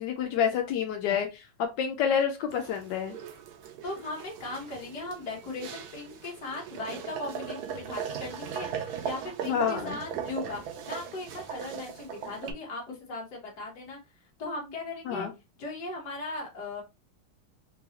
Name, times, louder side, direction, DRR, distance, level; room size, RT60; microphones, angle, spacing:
voice 1, 0.0-3.2 9.4-10.0 15.1-15.3, left 8 dB, 75° left, 4 dB, 1.0 m, -28 dB
sound 1, 2.5-12.5, right 7 dB, 85° right, 0.8 m, -39 dB
voice 2, 3.8-10.6 10.9-14.0 14.4-15.3 15.6-16.8, left 2 dB, 50° left, -1 dB, 1.7 m, -38 dB
3.9 x 2.3 x 2.8 m, 0.25 s
omnidirectional pair, 2.3 m